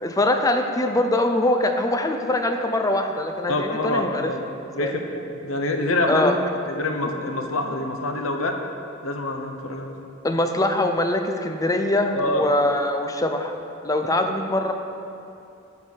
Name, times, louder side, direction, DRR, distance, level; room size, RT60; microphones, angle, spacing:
voice 1, 0.0-4.3 4.8-4.9 6.1-6.4 10.2-13.6 13.8-14.7, left 1 dB, 15° left, 5 dB, 0.6 m, -23 dB
voice 2, 3.5-4.5 4.7-6.3 6.7-8.6 9.0-10.0 12.1-12.4, left 2 dB, 85° left, 4 dB, 1.0 m, -26 dB
11.0 x 4.7 x 7.2 m, 2.7 s
head